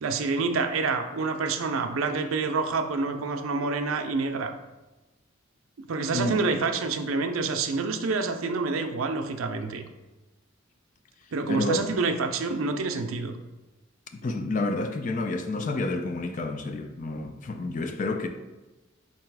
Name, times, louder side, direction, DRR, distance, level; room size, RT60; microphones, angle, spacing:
voice 1, 0.0-4.5 5.9-9.8 11.3-13.4, right 4 dB, 85° right, 0.5 m, -27 dB
voice 2, 14.1-18.3, left 2 dB, 40° left, 0.4 m, -29 dB
3.9 x 2.9 x 4.6 m
head